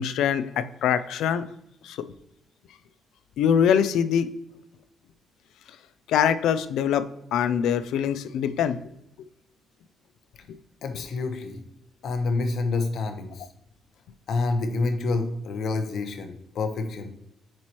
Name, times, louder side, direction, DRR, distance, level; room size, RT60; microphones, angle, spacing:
voice 1, 0.0-1.4 1.8-2.0 3.4-4.3 6.1-8.8, left 8 dB, 90° left, 13 dB, 0.4 m, -23 dB
voice 2, 10.8-11.6 12.0-13.4 14.3-17.1, left 3 dB, 60° left, 7 dB, 0.9 m, -28 dB
7.2 x 4.5 x 3.0 m, 0.84 s
cardioid pair, 155°, 0 cm